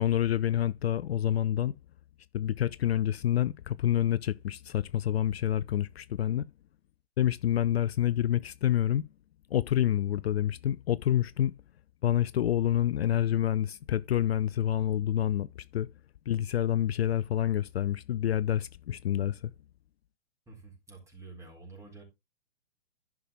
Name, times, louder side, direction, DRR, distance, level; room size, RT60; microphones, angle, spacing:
voice 1, 0.0-1.7 2.3-6.5 7.2-9.0 9.5-11.5 12.0-15.5 15.7-15.9 16.3-19.5, left 11 dB, 60° left, 0.5 m, -27 dB
voice 2, 20.5-22.0, right 3 dB, 10° right, 3.8 m, -49 dB
11.0 x 5.9 x 3.5 m
figure-of-eight pair, 115°, 34 cm